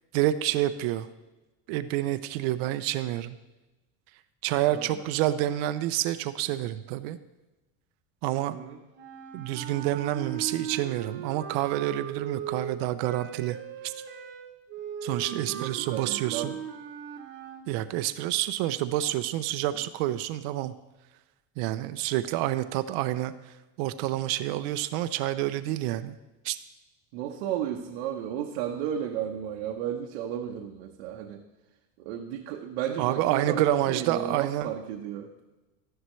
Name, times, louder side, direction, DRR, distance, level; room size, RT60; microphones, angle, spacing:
voice 1, 0.1-1.1 1.7-3.4 4.4-7.2 8.2-8.6 9.3-13.6 13.8-13.9 15.0-16.5 17.7-20.7 21.6-26.2 26.4-26.6 33.0-34.7, right 14 dB, 65° right, 12 dB, 0.5 m, -28 dB
voice 2, 8.5-8.8 15.3-16.6 27.1-31.4 32.0-35.3, right 9 dB, 90° right, 2 dB, 1.0 m, -33 dB
sound 1, 8.9-17.6, right 8 dB, 35° right, 1.0 m, -38 dB
13.0 x 11.0 x 3.1 m, 1.1 s
cardioid pair, 175°, 32 cm